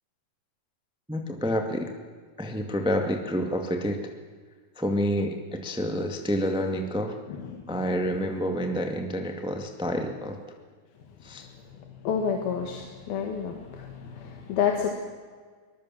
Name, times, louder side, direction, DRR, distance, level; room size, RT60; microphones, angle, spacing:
voice 1, 1.1-1.9 2.4-4.1 4.8-7.2 7.7-10.4 11.2-11.5, equal, 5° right, 4 dB, 0.4 m, -28 dB
voice 2, 7.3-7.9 11.4-14.9, left 7 dB, 80° left, 3 dB, 3.7 m, -30 dB
23.5 x 20.5 x 7.6 m, 1.5 s
omnidirectional pair, 4.2 m